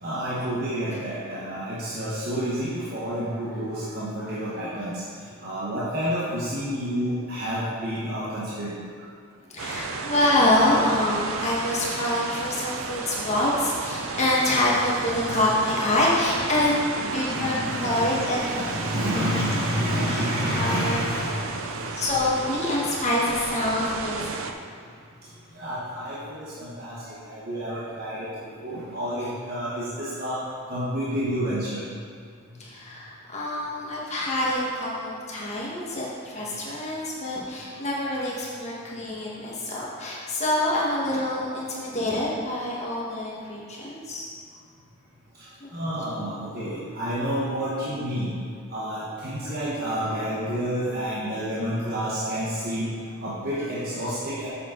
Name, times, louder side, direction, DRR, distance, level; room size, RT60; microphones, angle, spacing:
voice 1, 0.0-5.0 5.4-8.8 16.6-16.7 17.0-21.9 25.6-28.3 28.6-30.4 30.7-31.8 45.7-48.4 48.7-52.9 53.2-54.5, equal, 45° right, -9 dB, 1.2 m, -29 dB
voice 2, 9.5-18.7 19.1-19.4 20.0-20.2 20.5-21.4 21.9-24.4 32.6-44.3 45.6-45.7 46.3-46.4, left 1 dB, 30° left, -5 dB, 1.4 m, -26 dB
sound 1, 9.6-24.5, right 4 dB, 65° right, 0.5 m, -33 dB
7.6 x 6.9 x 3.9 m, 2.1 s
head